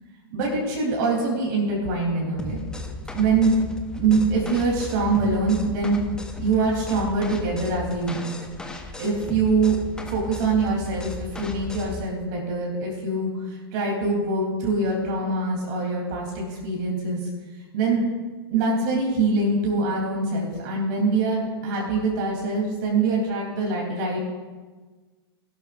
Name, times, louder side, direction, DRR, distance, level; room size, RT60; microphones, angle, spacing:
voice 1, 0.3-2.6 3.1-3.6 3.9-6.0 6.4-8.3 9.0-9.8 10.1-17.2 17.7-18.0 18.5-24.2, right 3 dB, 50° right, -2 dB, 3.4 m, -24 dB
sound 1, 2.4-12.1, left 3 dB, 5° left, 1.0 m, -35 dB
18.0 x 12.0 x 2.6 m, 1.3 s
hypercardioid pair, 115°, 13 cm